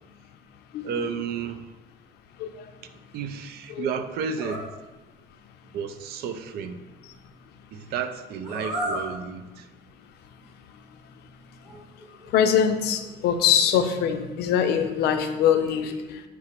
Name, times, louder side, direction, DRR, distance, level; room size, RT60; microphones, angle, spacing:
voice 1, 0.8-1.8 3.1-4.7 5.7-6.8 7.7-9.7, right 6 dB, 70° right, 10 dB, 0.4 m, -32 dB
sound 1, 4.4-4.7 8.4-9.1 10.4-10.5 11.6-12.5 13.0-13.8, equal, 5° right, 1.3 m, -34 dB
voice 2, 12.3-16.2, left 8 dB, 75° left, 8 dB, 0.5 m, -23 dB
5.9 x 2.0 x 4.3 m, 1.1 s
cardioid pair, 110°, 17 cm